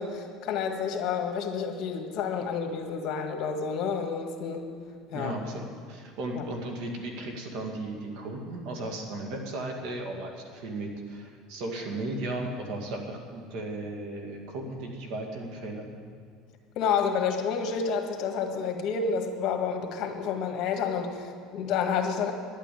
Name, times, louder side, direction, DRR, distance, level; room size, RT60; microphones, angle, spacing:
voice 1, 0.0-4.7 5.1-5.4 6.3-6.4 16.7-22.3, left 6 dB, 55° left, 4 dB, 1.7 m, -29 dB
voice 2, 5.1-15.9, right 2 dB, 65° right, 2 dB, 2.3 m, -35 dB
11.5 x 8.8 x 8.7 m, 2.2 s
supercardioid pair, 125°, 0 cm